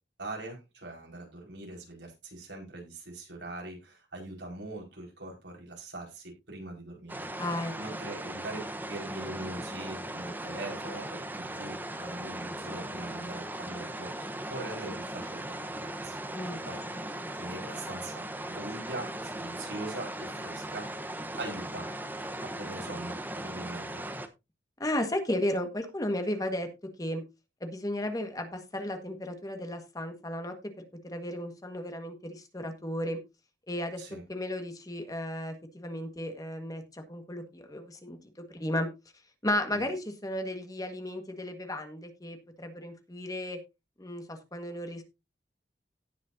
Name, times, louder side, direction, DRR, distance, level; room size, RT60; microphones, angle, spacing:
voice 1, 0.2-7.3 7.8-8.6 8.9-16.2 16.7-16.8 17.3-20.9 21.3-21.9 22.4-24.0 34.0-34.2 39.7-39.8, right 2 dB, 90° right, 1 dB, 5.1 m, -42 dB
sound 1, 7.1-24.3, right 1 dB, 10° right, 1.0 m, -38 dB
voice 2, 7.4-7.7 16.3-16.6 17.2-17.3 24.8-26.7 27.0-27.2 27.6-33.2 33.7-34.0 34.3-38.9 39.4-43.6 44.0-45.0, left 1 dB, 20° left, 6 dB, 1.6 m, -34 dB
17.5 x 6.4 x 2.7 m, 0.25 s
head